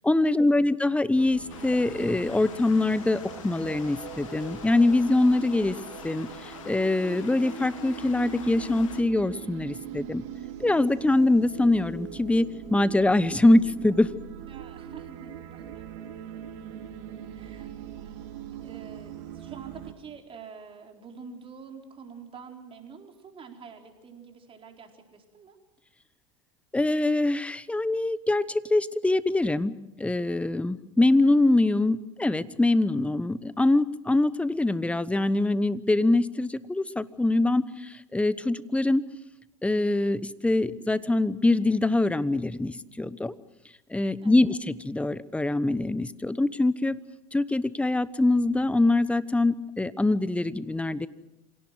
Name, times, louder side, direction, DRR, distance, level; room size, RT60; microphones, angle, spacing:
voice 1, 0.0-5.8 6.0-10.2 10.6-14.1 26.7-39.0 39.6-43.3 43.9-47.0 47.3-51.1, left 2 dB, 10° left, 16 dB, 1.1 m, -24 dB
sound 1, 1.2-19.9, right 9 dB, 70° right, 2.7 m, -41 dB
sound 2, 1.5-9.0, left 10 dB, 85° left, 1.8 m, -45 dB
voice 2, 14.5-16.1 17.3-17.7 18.0-25.6 44.2-44.6, right 6 dB, 35° right, 3 dB, 4.5 m, -47 dB
26.5 x 18.0 x 7.9 m, 0.97 s
hypercardioid pair, 90°, 16 cm